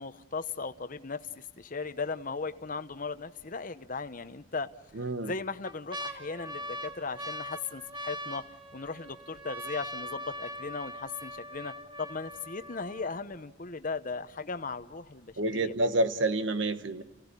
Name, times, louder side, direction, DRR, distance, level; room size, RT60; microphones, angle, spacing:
voice 1, 0.0-4.7 5.0-8.4 8.7-11.7 12.0-15.7, left 4 dB, 45° left, 11 dB, 1.0 m, -37 dB
sound 1, 2.4-2.9 3.4-3.5 4.4-4.9 5.4-13.4 14.1-14.2 14.3-14.8 15.3-15.4, equal, 25° right, 1.4 m, -41 dB
voice 2, 4.9-5.3 15.4-17.0, right 2 dB, 80° right, 10 dB, 1.3 m, -28 dB
29.5 x 17.0 x 9.9 m, 1.2 s
head